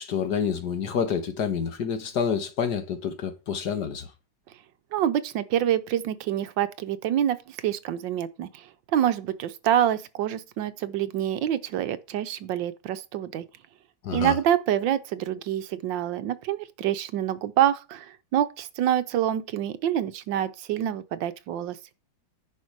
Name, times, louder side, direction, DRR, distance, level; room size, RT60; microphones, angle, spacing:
voice 1, 0.0-4.1 14.0-14.4, left 7 dB, 60° left, 1.7 m, -28 dB
voice 2, 4.9-13.5 14.1-21.8, right 11 dB, 75° right, 1.4 m, -26 dB
10.5 x 5.2 x 4.7 m
omnidirectional pair, 2.1 m